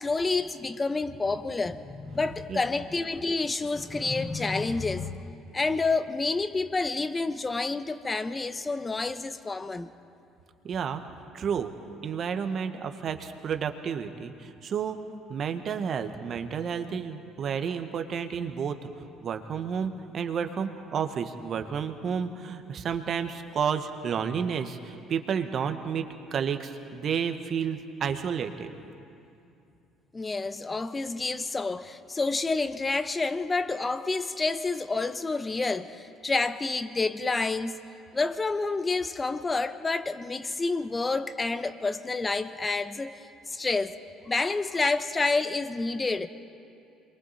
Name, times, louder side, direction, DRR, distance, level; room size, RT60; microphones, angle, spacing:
voice 1, 0.0-9.9 30.1-37.8 38.1-44.0 44.3-46.3, left 3 dB, 25° left, 1.0 m, -29 dB
voice 2, 10.6-11.0 11.3-11.7 12.0-15.0 15.3-18.9 19.2-26.1 26.3-28.7, right 7 dB, 50° right, 1.4 m, -31 dB
27.5 x 22.5 x 4.2 m
hypercardioid pair, 65°, 0 cm